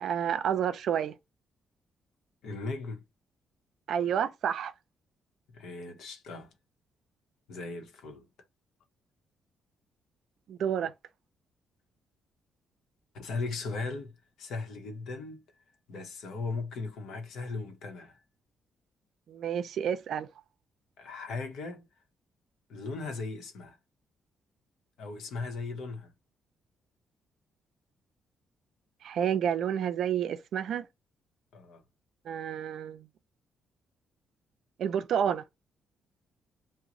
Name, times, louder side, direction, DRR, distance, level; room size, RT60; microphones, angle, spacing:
voice 1, 0.0-1.1 3.9-4.7 10.5-10.9 19.3-20.3 29.0-30.9 32.3-33.1 34.8-35.4, right 8 dB, 65° right, 0.4 m, -29 dB
voice 2, 2.4-3.0 5.5-6.5 7.5-8.3 13.1-14.1 14.4-15.4 15.9-18.2 21.0-21.9 22.7-23.8 25.0-26.1 31.5-31.8, left 3 dB, 80° left, 0.8 m, -37 dB
3.0 x 2.1 x 3.7 m
cardioid pair, 120°, 0 cm